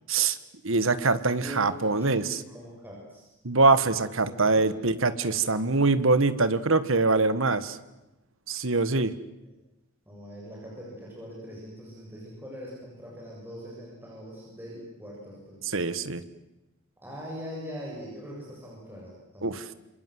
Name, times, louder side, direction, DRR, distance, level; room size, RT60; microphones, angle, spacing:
voice 1, 0.6-2.4 3.4-7.8 8.5-9.1 15.7-16.2 19.4-19.6, right 3 dB, 60° right, 13 dB, 1.6 m, -23 dB
voice 2, 1.4-3.3 4.2-4.8 9.4-9.5 10.1-15.6 17.0-19.6, equal, 10° right, -4 dB, 7.3 m, -42 dB
27.5 x 26.5 x 7.9 m, 0.95 s
head